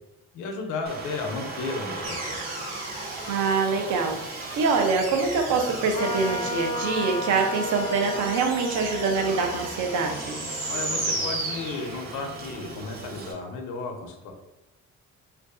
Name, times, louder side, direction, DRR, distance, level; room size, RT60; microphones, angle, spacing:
voice 1, 0.3-2.4 10.7-14.3, left 3 dB, 90° left, 4 dB, 0.5 m, -34 dB
Aircraft, 0.9-13.3, right 2 dB, 30° right, 0.5 m, -38 dB
sound 1, 2.0-12.3, right 2 dB, 60° right, 0.9 m, -35 dB
voice 2, 3.3-10.4, right 4 dB, 80° right, 3 dB, 0.5 m, -25 dB
Trumpet, 5.9-11.7, left 2 dB, 20° left, 0.3 m, -35 dB
2.5 x 2.2 x 2.4 m, 0.99 s
cardioid pair, 90°, 30 cm